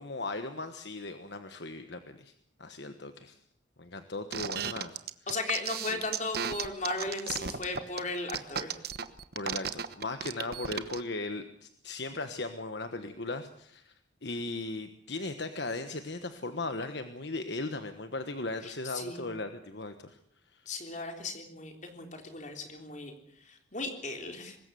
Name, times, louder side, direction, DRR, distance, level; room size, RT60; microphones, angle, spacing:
voice 1, 0.0-2.3 2.6-3.4 3.8-5.0 5.9-6.0 9.3-13.9 14.2-20.2 20.5-20.6, left 2 dB, 60° left, 8 dB, 1.3 m, -37 dB
sound 1, 4.3-11.0, right 7 dB, 50° right, 1.1 m, -34 dB
voice 2, 5.3-8.8 18.6-19.3 20.7-23.1 23.5-24.6, left 3 dB, 40° left, 4 dB, 3.7 m, -36 dB
24.0 x 20.5 x 7.0 m, 0.68 s
head